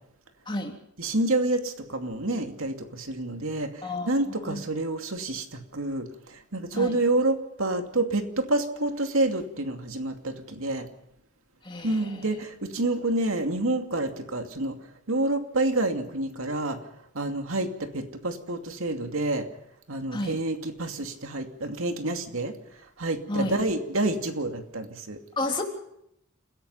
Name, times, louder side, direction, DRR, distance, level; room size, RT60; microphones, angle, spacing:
voice 1, 0.4-0.8 3.8-4.6 6.7-7.0 11.6-12.3 20.1-20.4 23.3-23.6 25.4-25.6, left 2 dB, 25° left, 2 dB, 3.3 m, -32 dB
voice 2, 1.0-10.9 11.8-14.8 15.1-16.8 17.1-19.5 19.9-22.5 23.0-25.2, right 2 dB, 90° right, 5 dB, 2.6 m, -28 dB
29.5 x 16.5 x 5.6 m, 0.79 s
head